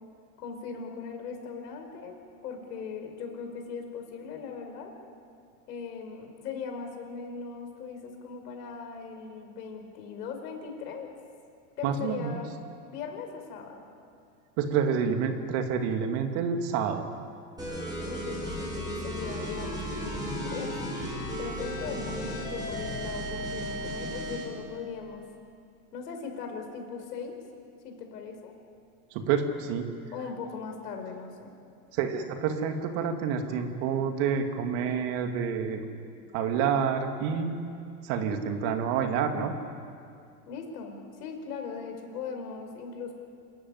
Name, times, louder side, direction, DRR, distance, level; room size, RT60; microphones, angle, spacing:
voice 1, 0.4-2.1 2.4-4.9 5.7-11.1 11.8-12.5 12.9-13.8 18.0-20.8 21.4-25.3 25.9-27.4 27.8-28.5 30.1-31.5 40.5-43.1, left 5 dB, 80° left, 4 dB, 5.0 m, -39 dB
voice 2, 11.8-12.4 14.6-17.1 29.1-29.9 31.9-35.8 36.3-37.7 38.0-39.6, right 6 dB, 50° right, 6 dB, 2.5 m, -28 dB
sound 1, 17.6-24.5, equal, 10° right, 6.8 m, -34 dB
26.5 x 14.0 x 9.7 m, 2.4 s
supercardioid pair, 130°, 47 cm